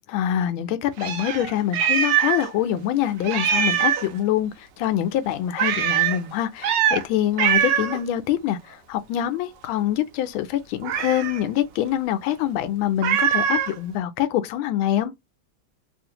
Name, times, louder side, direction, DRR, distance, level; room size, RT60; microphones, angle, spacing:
voice 1, 0.1-15.1, left 11 dB, 80° left, 1.4 m, -25 dB
Meow, 1.0-2.5 2.8-2.9 3.2-4.1 5.6-6.2 6.6-7.0 7.4-8.0 10.8-11.4 13.0-13.7, right 9 dB, 70° right, 1.2 m, -22 dB
3.4 x 2.5 x 2.8 m
omnidirectional pair, 2.3 m